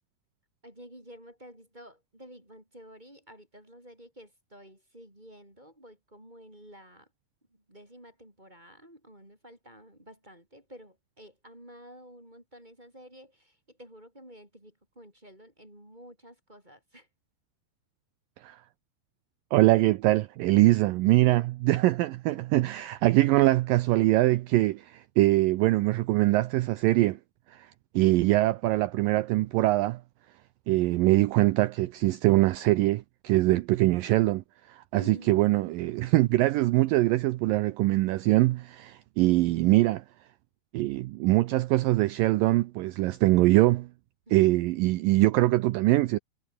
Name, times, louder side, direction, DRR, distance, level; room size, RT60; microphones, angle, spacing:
voice 1, 0.6-7.1 7.5-17.1 34.9-35.4 44.3-44.7, equal, 10° right, 5.1 m, -50 dB
voice 2, 19.5-27.2 27.5-27.7 27.9-30.0 30.7-34.4 34.7-40.0 40.7-43.9 44.3-46.2, right 18 dB, 75° right, 2.2 m, -23 dB
omnidirectional pair, 4.4 m